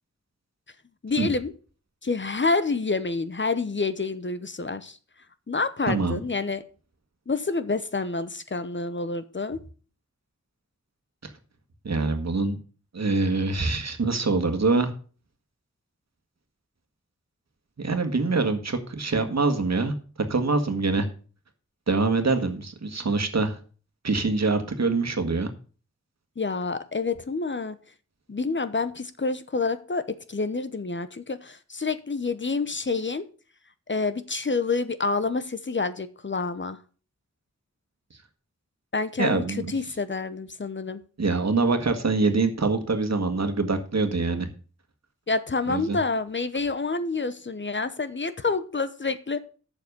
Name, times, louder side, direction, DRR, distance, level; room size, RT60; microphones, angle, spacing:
voice 1, 1.0-1.5 2.0-5.0 5.5-6.6 7.3-9.6 26.4-27.8 28.3-33.3 33.9-36.8 38.9-41.0 45.3-49.4, left 3 dB, 40° left, 12 dB, 0.9 m, -28 dB
voice 2, 5.9-6.2 11.2-11.3 11.8-12.6 12.9-14.9 17.8-19.9 20.3-21.1 21.9-23.6 24.0-25.5 39.2-39.7 41.2-44.5 45.7-46.0, right 3 dB, 65° right, 6 dB, 1.7 m, -24 dB
8.0 x 7.2 x 6.8 m, 0.39 s
wide cardioid pair, 55°, 29 cm